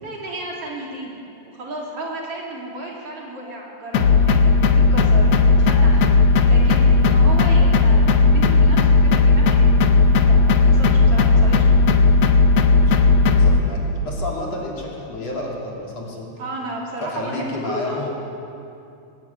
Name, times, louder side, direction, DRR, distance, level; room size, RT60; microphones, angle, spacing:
voice 1, 0.0-1.2 1.5-6.1 6.4-9.6 10.2-11.9 16.4-18.1, right 1 dB, 45° right, -3 dB, 3.7 m, -33 dB
sound 1, 3.9-13.6, left 3 dB, 65° left, 1.7 m, -15 dB
voice 2, 12.9-16.3 17.0-18.1, left 2 dB, 50° left, -3 dB, 4.0 m, -30 dB
20.5 x 13.5 x 9.5 m, 2.6 s
omnidirectional pair, 4.0 m